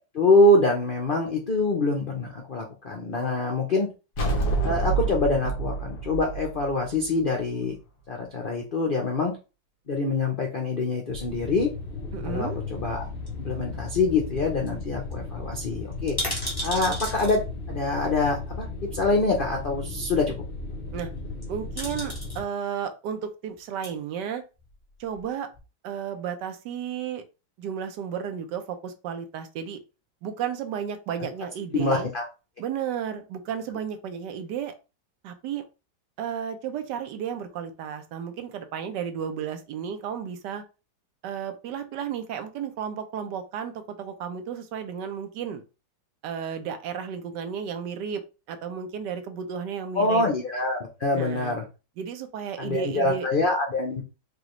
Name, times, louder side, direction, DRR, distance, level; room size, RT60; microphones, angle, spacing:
voice 1, 0.1-3.9 4.6-7.7 8.1-9.4 9.9-11.7 12.2-13.1 13.4-16.2 16.6-17.4 17.7-20.3 31.7-32.3 49.9-51.6 52.6-54.0, left 2 dB, 90° left, 1 dB, 0.4 m, -25 dB
sound 1, 4.2-7.6, right 4 dB, 65° left, 1.6 m, -27 dB
sound 2, 11.1-22.4, left 3 dB, 45° left, 0.7 m, -35 dB
voice 2, 12.1-12.6 20.9-21.1 21.5-24.4 25.0-25.5 25.8-27.2 27.6-29.8 30.2-32.1 32.6-34.7 35.2-35.6 36.2-40.6 41.2-45.6 46.2-48.2 48.5-50.2 51.1-51.5 52.0-53.3, right 8 dB, 75° right, 8 dB, 1.2 m, -33 dB
sound 3, 13.3-14.1 14.4-14.5 14.7-14.8 15.1-15.2 15.9-17.4 18.5-18.6 21.2-21.4 21.8-22.4 23.6-23.9 24.6-25.3 25.5-25.6, equal, 15° left, 1.2 m, -34 dB
4.9 x 2.3 x 3.0 m, 0.30 s
omnidirectional pair, 2.0 m